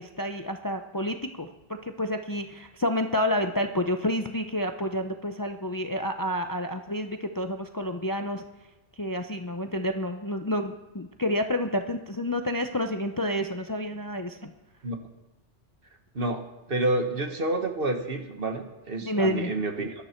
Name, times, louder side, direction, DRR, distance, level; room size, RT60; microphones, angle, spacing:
voice 1, 0.0-1.5 1.8-8.4 9.0-14.5 19.0-19.5, left 1 dB, 25° left, 6 dB, 0.6 m, -29 dB
voice 2, 16.7-19.9, right 2 dB, 50° right, 5 dB, 1.7 m, -28 dB
17.5 x 12.5 x 4.5 m, 1.1 s
omnidirectional pair, 1.2 m